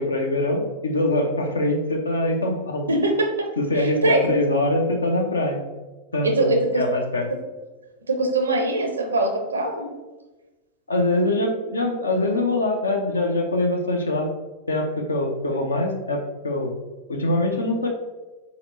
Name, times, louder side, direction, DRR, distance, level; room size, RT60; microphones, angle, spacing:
voice 1, 0.0-2.9 3.6-5.6 6.1-7.3 10.9-14.3 14.7-16.8 17.1-17.9, left 1 dB, 75° left, 3 dB, 0.6 m, -23 dB
voice 2, 2.9-3.5 3.7-4.3 6.2-6.9 7.3-7.4 8.1-9.9, right 2 dB, 75° right, 5 dB, 0.6 m, -22 dB
4.3 x 4.0 x 2.6 m, 1.2 s
figure-of-eight pair, 90°, 0 cm